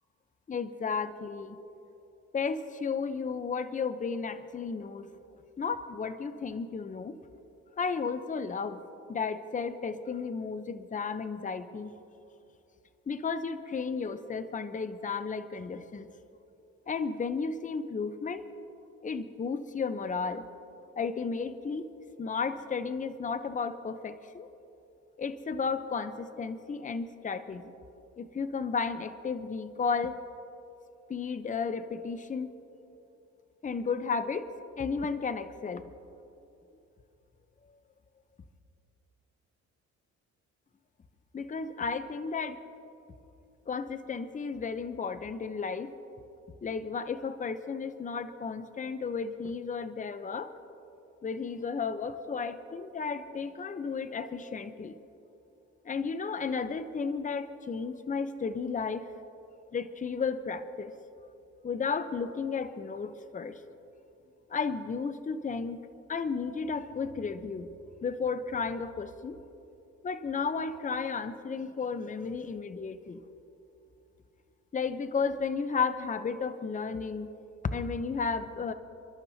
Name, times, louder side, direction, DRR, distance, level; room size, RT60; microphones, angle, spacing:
voice 1, 0.5-1.6 2.3-5.1 5.6-7.2 7.8-8.8 9.1-12.0 13.1-16.1 16.9-18.4 19.0-20.5 21.0-21.9 22.2-24.5 25.2-27.7 28.2-30.2 31.1-32.5 33.6-34.5 34.8-35.8 41.3-42.6 43.7-45.9 46.6-50.5 51.2-55.0 55.8-59.1 59.7-60.9 61.6-63.6 64.5-65.8 66.1-67.7 68.0-69.4 70.0-73.2 74.7-77.3 77.6-78.7, left 5 dB, 25° left, 11 dB, 0.7 m, -33 dB
29.0 x 12.0 x 2.8 m, 2.8 s
cardioid pair, 90°, 30 cm